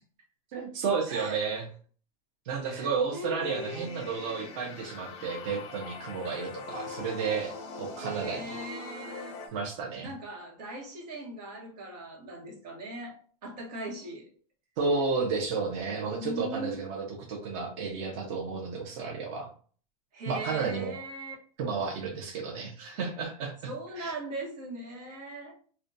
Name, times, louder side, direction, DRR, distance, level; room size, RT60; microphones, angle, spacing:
voice 1, 0.5-1.7 2.5-8.5 9.5-10.1 14.8-19.5 20.3-20.9 21.6-23.5 24.0-24.1, right 5 dB, 55° right, 0.6 m, -32 dB
voice 2, 1.1-1.4 2.6-3.9 8.0-9.4 10.0-14.3 16.0-16.8 20.1-21.3 23.7-25.6, right 1 dB, 85° right, 1.1 m, -39 dB
sound 1, 3.4-9.5, left 4 dB, 30° left, 0.4 m, -42 dB
2.5 x 2.2 x 2.5 m
supercardioid pair, 150°, 20 cm